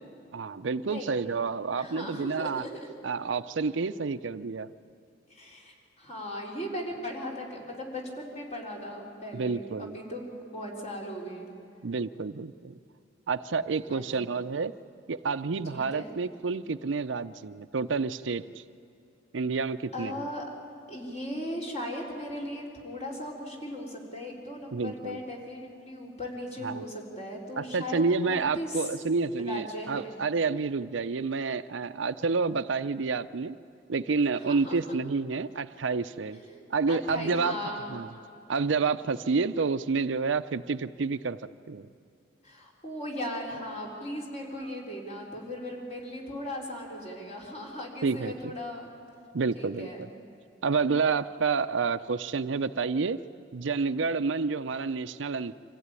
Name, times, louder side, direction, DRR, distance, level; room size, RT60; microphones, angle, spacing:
voice 1, 0.3-2.6 3.0-4.7 9.3-9.9 11.8-12.8 13.3-14.7 15.1-18.6 19.3-20.3 24.7-25.2 26.6-26.8 27.6-33.6 33.9-36.4 36.7-37.6 37.9-38.1 38.5-41.4 41.7-41.9 48.0-48.5 49.3-49.9 50.6-53.2 53.5-55.5, right 4 dB, 85° right, 10 dB, 0.6 m, -29 dB
voice 2, 0.9-1.2 1.8-2.7 5.3-10.2 10.5-11.5 13.9-14.3 15.7-16.1 19.9-20.4 20.9-28.9 29.4-30.1 34.3-34.8 36.3-36.6 36.9-38.1 42.4-48.9 49.5-50.0, left 1 dB, 35° left, -1 dB, 4.2 m, -38 dB
25.0 x 15.5 x 9.7 m, 2.5 s
head